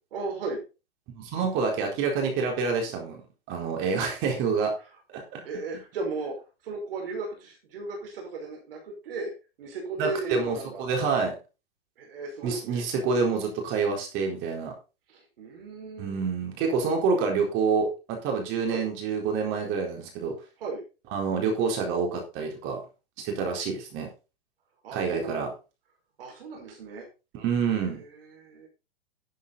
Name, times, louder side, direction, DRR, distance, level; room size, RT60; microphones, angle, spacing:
voice 1, 0.1-0.6 5.4-6.4 6.6-9.3 9.6-10.8 12.0-12.8 15.1-16.2 18.7-18.9 20.6-20.8 24.8-25.3 26.2-27.1 27.8-28.7, right 3 dB, 65° right, 0 dB, 5.4 m, -36 dB
voice 2, 1.1-3.2 3.5-4.7 5.1-5.4 10.0-11.3 12.4-14.7 16.0-20.3 21.1-22.8 23.2-24.1 24.9-25.5 27.3-28.0, right 5 dB, 40° right, 1 dB, 4.3 m, -27 dB
12.0 x 9.3 x 4.1 m, 0.31 s
hypercardioid pair, 115°, 30 cm